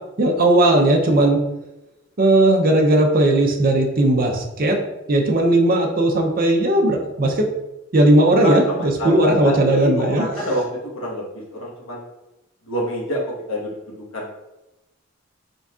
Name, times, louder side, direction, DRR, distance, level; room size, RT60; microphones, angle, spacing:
voice 1, 0.2-1.4 2.2-4.8 5.1-7.5 7.9-10.5, right 1 dB, 45° right, 2 dB, 0.6 m, -17 dB
voice 2, 8.4-12.0 12.7-14.3, equal, 80° left, -3 dB, 1.3 m, -27 dB
4.4 x 3.9 x 2.4 m, 0.93 s
head